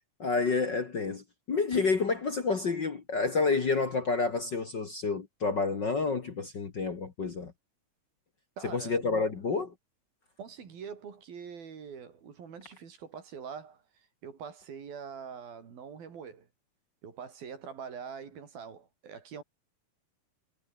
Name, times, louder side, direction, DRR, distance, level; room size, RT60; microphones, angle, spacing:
voice 1, 0.2-7.5 8.7-9.7, left 4 dB, 40° left, 1.8 m, -29 dB
voice 2, 8.6-9.3 10.4-16.5 17.0-19.4, right 6 dB, 85° right, 5.7 m, -44 dB
omnidirectional pair, 4.1 m